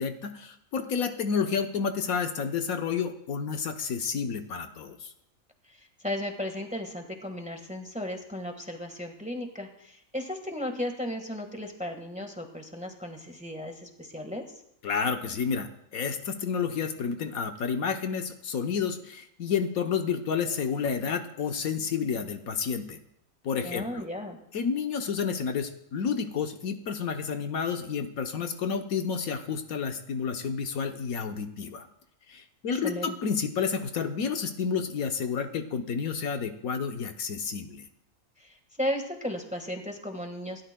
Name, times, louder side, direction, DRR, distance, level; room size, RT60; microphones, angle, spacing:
voice 1, 0.0-5.1 14.8-23.0 23.4-24.1 24.5-31.9 32.3-37.8, left 6 dB, 75° left, 6 dB, 1.4 m, -30 dB
voice 2, 5.7-14.5 23.6-24.4 32.7-33.1 38.4-40.6, left 1 dB, 5° right, 4 dB, 1.4 m, -35 dB
27.0 x 12.5 x 2.3 m, 0.75 s
omnidirectional pair, 1.5 m